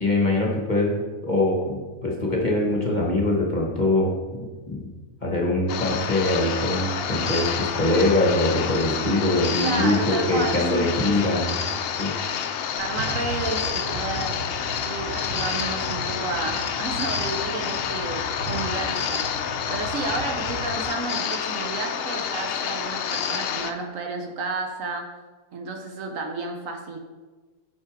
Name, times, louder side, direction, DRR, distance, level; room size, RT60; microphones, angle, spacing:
voice 1, 0.0-4.1 4.7-4.9 5.2-11.6 12.0-12.1, left 1 dB, 35° left, -1 dB, 1.1 m, -23 dB
sound 1, 5.7-23.7, left 7 dB, 80° left, 0.5 m, -28 dB
voice 2, 9.6-11.3 12.8-25.1 25.5-27.0, right 3 dB, 65° right, 3 dB, 1.2 m, -32 dB
sound 2, 12.8-20.8, right 1 dB, 85° right, 1.5 m, -37 dB
6.2 x 5.8 x 4.9 m, 1.3 s
omnidirectional pair, 1.6 m